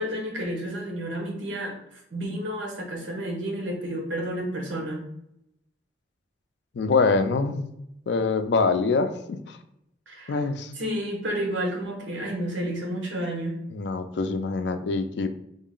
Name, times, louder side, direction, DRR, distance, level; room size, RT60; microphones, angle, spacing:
voice 1, 0.0-5.0 10.1-10.4 10.8-13.6, equal, 80° right, 1 dB, 1.0 m, -31 dB
voice 2, 6.7-7.7 8.1-9.6 10.3-10.7 13.7-15.3, left 4 dB, 60° left, 8 dB, 0.4 m, -24 dB
3.7 x 2.1 x 3.7 m, 0.77 s
head